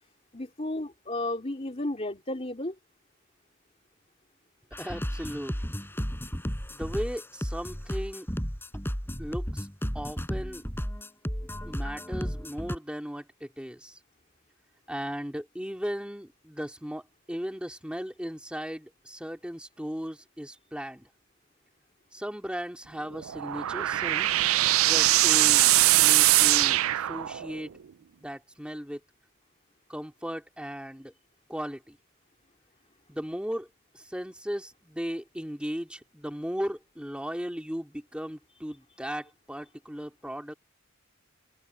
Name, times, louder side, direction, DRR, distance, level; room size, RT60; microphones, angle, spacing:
voice 1, 0.3-2.7, left 1 dB, 30° left, 3.3 m, -33 dB
sound 1, 4.7-12.8, equal, 10° left, 5.5 m, -34 dB
voice 2, 4.8-5.8 6.7-8.3 9.2-9.7 9.9-10.6 11.7-14.0 14.9-21.1 22.1-24.5 24.8-27.7 28.2-29.0 29.9-31.1 31.5-32.0 33.1-33.7 33.9-40.5, equal, 5° right, 3.2 m, -36 dB
sound 2, 23.1-27.7, right 16 dB, 75° right, 0.4 m, -22 dB
open air
head